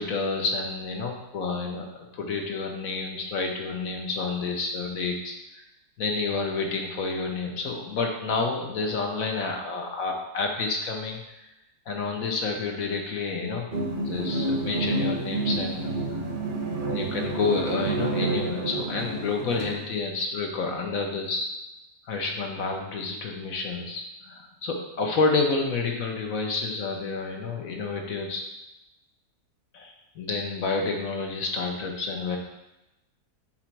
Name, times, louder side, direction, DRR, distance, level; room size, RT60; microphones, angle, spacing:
voice 1, 0.0-5.3 6.0-11.4 11.9-13.7 14.0-15.9 16.9-21.5 22.1-28.4 29.7-32.4, left 4 dB, 60° left, 2 dB, 1.2 m, -29 dB
sound 1, 13.7-19.8, right 2 dB, 45° right, 0.7 m, -29 dB
7.9 x 3.1 x 4.5 m, 0.95 s
omnidirectional pair, 1.7 m